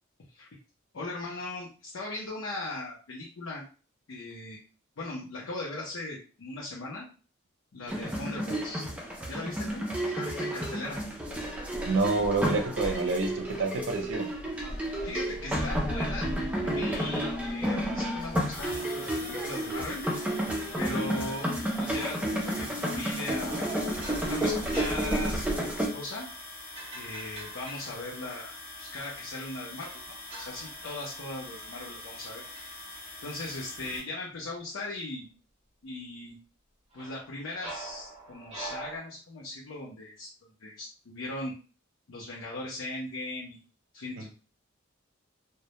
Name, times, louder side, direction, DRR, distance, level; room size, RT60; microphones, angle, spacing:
voice 1, 0.9-3.6 4.1-4.6 5.0-7.1 7.7-8.9 9.3-9.9 10.2-11.0 14.8-16.3 16.6-20.0 20.8-21.5 21.8-23.7 24.0-25.6 25.9-26.3 26.9-28.5 28.8-32.4 33.2-35.3 35.8-36.4 36.9-40.3 40.6-41.5 42.1-43.6 43.9-44.3, left 2 dB, 80° left, -3 dB, 0.6 m, -38 dB
sound 1, 7.9-25.9, equal, 5° right, 0.4 m, -31 dB
voice 2, 11.8-14.3 21.2-21.3 44.2-44.3, right 3 dB, 65° right, 4 dB, 0.5 m, -28 dB
sound 2, 18.5-34.0, left 2 dB, 40° left, 0.9 m, -44 dB
sound 3, 24.0-28.8 29.8-32.2 32.5-32.9 36.9-39.0, right 2 dB, 30° right, 0.8 m, -45 dB
2.1 x 2.0 x 2.8 m, 0.36 s
head